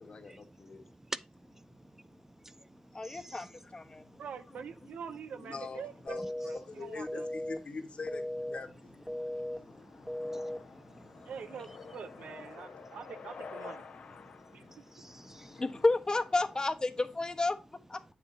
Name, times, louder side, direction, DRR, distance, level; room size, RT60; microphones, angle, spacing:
voice 1, 0.0-0.8 5.4-6.2 6.5-9.0, left 4 dB, 55° left, 1.8 m, -43 dB
voice 2, 0.7-3.5 4.1-4.2 9.1-11.3 14.4-15.6, right 1 dB, 15° right, 0.4 m, -50 dB
voice 3, 2.9-3.4 3.7-4.0 15.6-17.5 17.9-18.0, left 2 dB, 35° left, 1.2 m, -30 dB
voice 4, 4.2-7.3 11.2-13.9 14.5-15.0, right 7 dB, 90° right, 0.8 m, -45 dB
sound 1, 5.6-16.6, left 5 dB, 85° left, 1.3 m, -52 dB
sound 2, 6.1-6.6 7.1-7.6 8.1-8.6 9.1-9.6 10.1-10.6, left 1 dB, ahead, 1.3 m, -36 dB
7.5 x 7.2 x 2.8 m
cardioid pair, 60°, 2 cm